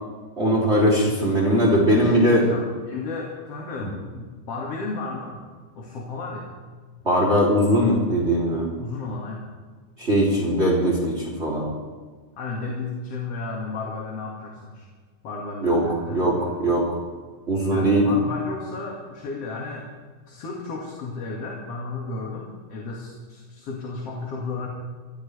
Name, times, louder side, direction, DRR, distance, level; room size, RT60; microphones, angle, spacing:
voice 1, 0.4-2.4 3.8-3.9 7.0-8.7 10.0-11.7 15.6-15.8 16.1-16.9 17.5-18.0, equal, 20° right, -2 dB, 3.3 m, -20 dB
voice 2, 1.9-5.4 5.7-6.5 8.8-9.5 12.4-14.8 15.2-16.5 17.7-19.9 20.2-24.7, left 3 dB, 50° left, -2 dB, 3.1 m, -33 dB
24.0 x 15.5 x 3.4 m, 1.5 s
omnidirectional pair, 3.7 m